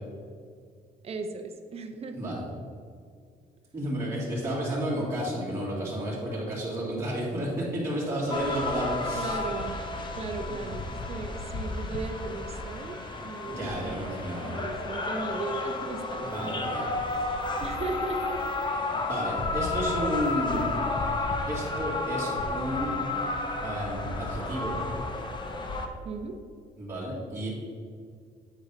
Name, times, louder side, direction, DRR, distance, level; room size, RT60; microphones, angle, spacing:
voice 1, 1.0-2.4 9.1-9.8 10.1-18.4 21.4-21.5 26.0-26.4, right 3 dB, 40° right, 6 dB, 0.7 m, -37 dB
voice 2, 2.1-2.4 3.7-9.4 10.5-10.7 13.5-14.6 16.2-17.0 18.9-20.8 21.5-23.0 23.6-24.8 26.8-27.5, equal, 15° right, -7 dB, 1.9 m, -32 dB
sound 1, 8.3-25.9, left 3 dB, 30° left, 0.7 m, -32 dB
8.4 x 3.9 x 5.2 m, 2.1 s
cardioid pair, 130°, 16 cm